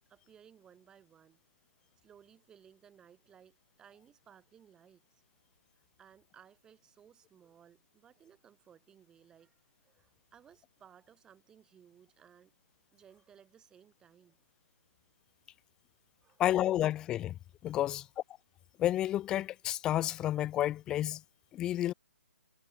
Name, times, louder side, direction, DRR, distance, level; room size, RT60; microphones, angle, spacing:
voice 1, 0.1-1.4 2.0-5.2 5.7-12.5 12.9-14.4 16.2-16.4 17.8-18.0, right 8 dB, 10° right, 6.2 m, -60 dB
voice 2, 16.4-17.4 17.6-18.1 18.8-21.2 21.5-21.9, left 13 dB, 10° left, 0.3 m, -30 dB
hypercardioid pair, 160°, 8 cm